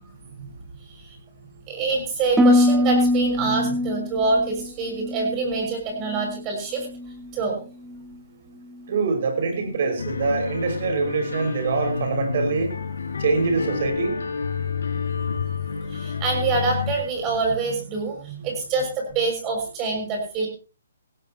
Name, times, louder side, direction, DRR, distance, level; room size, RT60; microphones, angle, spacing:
voice 1, 1.7-6.9 7.3-7.6 14.8-15.0 15.7-20.5, right 4 dB, 20° right, 2 dB, 6.4 m, -26 dB
Harp, 2.4-6.5 6.8-7.3 7.8-8.1, left 1 dB, 5° right, 1.2 m, -23 dB
voice 2, 8.9-12.7 13.2-14.2, right 4 dB, 50° right, 5 dB, 5.9 m, -24 dB
sound 1, 10.0-17.0, left 6 dB, 85° left, 4.9 m, -29 dB
17.5 x 17.0 x 3.0 m, 0.35 s
hypercardioid pair, 155°, 0 cm